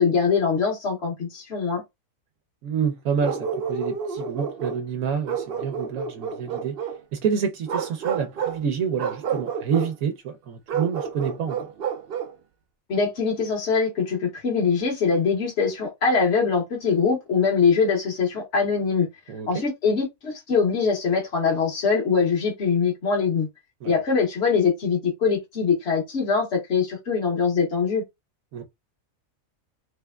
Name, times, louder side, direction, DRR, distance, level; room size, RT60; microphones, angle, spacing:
voice 1, 0.0-1.8 12.9-19.1 19.5-23.5 23.8-28.0, left 5 dB, 55° left, 1.4 m, -23 dB
voice 2, 2.6-6.8 7.1-11.7 19.3-19.6 23.8-23.9 28.5-28.6, right 7 dB, 85° right, 1.1 m, -28 dB
Bark, 3.2-4.8 5.2-7.0 7.6-8.6 9.0-9.9 10.7-12.4, right 7 dB, 55° right, 0.7 m, -30 dB
3.3 x 3.3 x 2.3 m
omnidirectional pair, 1.4 m